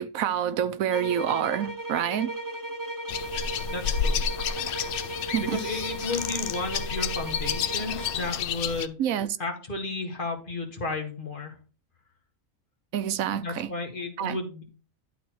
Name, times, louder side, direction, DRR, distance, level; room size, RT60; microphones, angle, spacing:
voice 1, 0.0-2.3 5.3-5.6 9.0-9.3 12.9-13.7 14.2-14.4, right 9 dB, 90° right, 1.1 m, -27 dB
sound 1, 0.9-8.3, right 1 dB, 20° right, 0.8 m, -36 dB
sound 2, 3.1-8.9, left 7 dB, 60° left, 0.6 m, -30 dB
voice 2, 3.7-4.2 5.4-9.0 9.4-11.6 13.3-14.6, left 3 dB, 40° left, 1.9 m, -33 dB
11.5 x 4.2 x 4.6 m
omnidirectional pair, 1.4 m